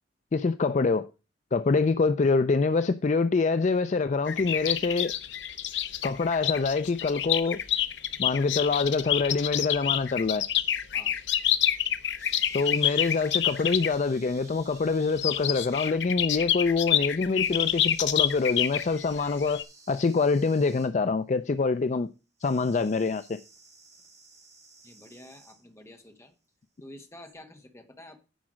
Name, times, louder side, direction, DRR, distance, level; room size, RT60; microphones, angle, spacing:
voice 1, 0.3-1.1 1.5-5.1 6.0-7.6 8.2-10.5 12.5-22.1 22.4-23.4, left 4 dB, 40° left, 0.4 m, -25 dB
sound 1, 4.3-13.9 15.1-19.6, left 11 dB, 70° left, 0.7 m, -28 dB
sound 2, 11.6-16.3 17.4-20.9 22.4-25.6 27.2-27.3, right 4 dB, 20° right, 2.2 m, -54 dB
voice 2, 24.8-26.3 26.8-28.2, left 1 dB, 15° left, 1.4 m, -49 dB
10.5 x 4.8 x 6.2 m
head